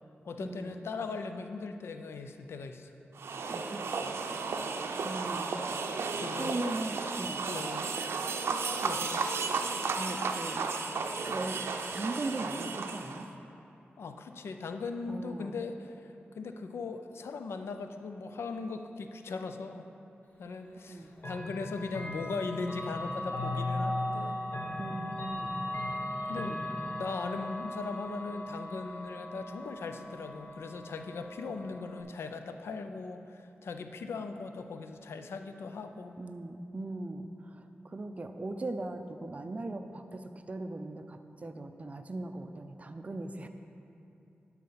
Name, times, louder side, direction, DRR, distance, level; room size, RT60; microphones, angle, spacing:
voice 1, 0.2-2.9 6.2-6.8 7.5-7.9 8.8-9.3 14.0-19.9 20.4-24.4 25.0-25.1 26.3-26.6 27.0-36.1, left 4 dB, 90° left, 7 dB, 0.5 m, -39 dB
sound 1, 3.2-13.3, right 4 dB, 85° right, 0.5 m, -34 dB
voice 2, 3.5-4.7 5.0-5.6 6.0-7.4 9.9-11.6 11.9-13.3 15.1-15.6 20.7-21.1 24.8-25.6 36.2-43.5, right 2 dB, 35° right, 7 dB, 0.5 m, -39 dB
Chime / Clock, 21.2-32.0, left 1 dB, 45° left, 1.3 m, -37 dB
12.0 x 4.2 x 5.6 m, 2.8 s
wide cardioid pair, 90°, 4 cm